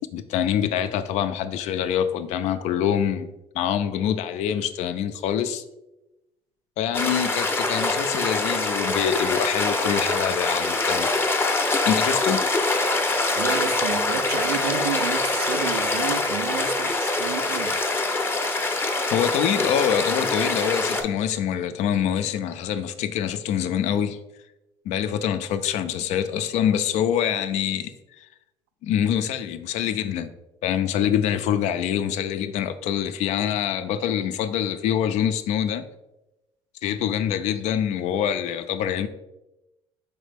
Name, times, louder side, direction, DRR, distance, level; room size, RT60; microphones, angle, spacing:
voice 1, 0.1-5.6 6.8-11.1 11.9-12.4 19.1-24.2 24.9-27.9 28.2-28.3 28.8-30.3 30.6-35.8 36.8-39.1, left 9 dB, 65° left, 0.4 m, -25 dB
Flowing Water at Buttsbury Wash, 6.9-21.0, left 2 dB, 15° left, 0.6 m, -24 dB
voice 2, 13.3-17.7, right 10 dB, 85° right, 0.4 m, -31 dB
4.3 x 3.2 x 3.3 m
supercardioid pair, 75°, 12 cm